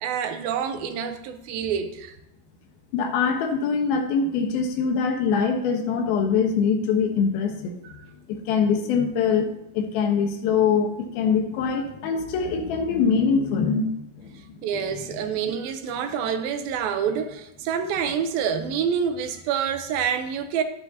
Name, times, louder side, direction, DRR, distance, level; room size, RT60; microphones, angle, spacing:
voice 1, 0.0-2.2 8.0-8.1 14.6-20.6, right 7 dB, 80° right, 2.6 m, -27 dB
voice 2, 2.9-7.8 8.3-14.6 15.1-15.5, left 6 dB, 85° left, 3.0 m, -23 dB
12.0 x 9.6 x 2.8 m
omnidirectional pair, 4.2 m